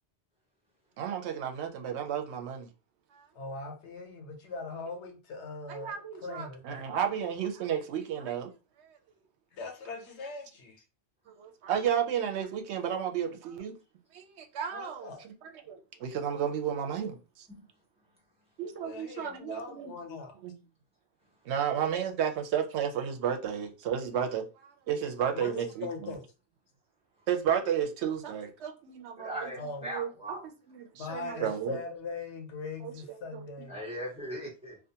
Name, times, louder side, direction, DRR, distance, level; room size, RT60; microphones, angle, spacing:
voice 1, 1.0-2.7 5.7-8.5 11.3-13.7 14.1-15.1 15.7-17.5 18.6-19.9 20.4-20.5 21.5-26.1 27.3-29.5 29.9-30.1 30.7-31.8 32.8-33.5, right 8 dB, 85° right, 0.9 m, -32 dB
voice 2, 3.3-6.9 9.5-10.8 14.7-15.2 18.8-20.3 25.3-26.2 29.6-29.9 31.0-33.8, left 3 dB, 85° left, 1.0 m, -40 dB
voice 3, 29.2-30.4 31.3-31.5 33.7-34.8, equal, 5° right, 1.2 m, -39 dB
2.4 x 2.4 x 2.7 m
omnidirectional pair, 1.1 m